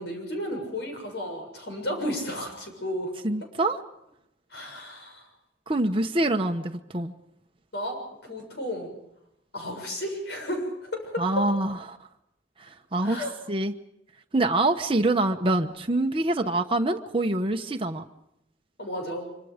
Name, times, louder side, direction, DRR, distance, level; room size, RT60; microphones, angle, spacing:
voice 1, 0.0-3.1 4.5-5.3 7.7-9.0 9.5-11.2 13.0-13.3 18.8-19.3, equal, 70° left, 3 dB, 6.9 m, -33 dB
voice 2, 3.2-3.8 5.7-7.1 11.2-12.0 12.7-13.7 14.3-18.0, right 2 dB, 30° right, 4 dB, 1.0 m, -25 dB
25.5 x 24.5 x 5.1 m, 0.81 s
head